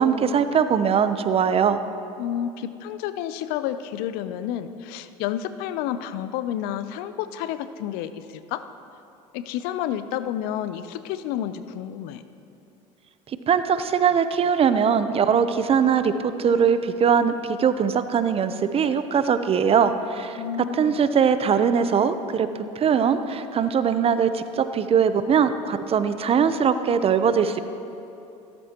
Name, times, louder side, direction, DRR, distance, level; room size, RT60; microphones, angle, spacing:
voice 1, 0.0-1.8 13.5-20.4 20.7-22.5 22.8-27.6, right 7 dB, 35° right, 11 dB, 0.7 m, -21 dB
voice 2, 2.2-8.7 9.3-12.2 20.4-21.0, left 10 dB, 70° left, 12 dB, 0.5 m, -30 dB
15.0 x 13.5 x 2.9 m, 2.7 s
hypercardioid pair, 80°, 16 cm